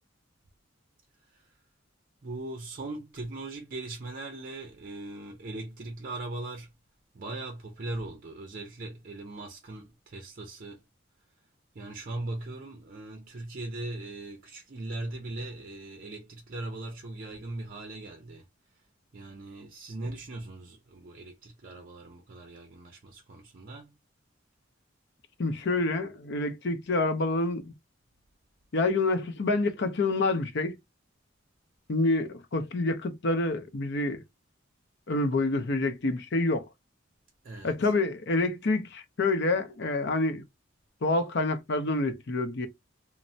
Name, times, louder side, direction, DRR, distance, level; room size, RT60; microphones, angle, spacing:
voice 1, 2.2-6.7 7.1-10.8 11.7-18.4 19.1-23.9 37.4-37.9, right 2 dB, 45° right, 0.5 m, -39 dB
voice 2, 25.4-27.7 28.7-30.8 31.9-34.2 35.1-36.7 37.6-40.4 41.0-42.7, left 2 dB, 60° left, 0.6 m, -27 dB
3.1 x 2.0 x 2.6 m
head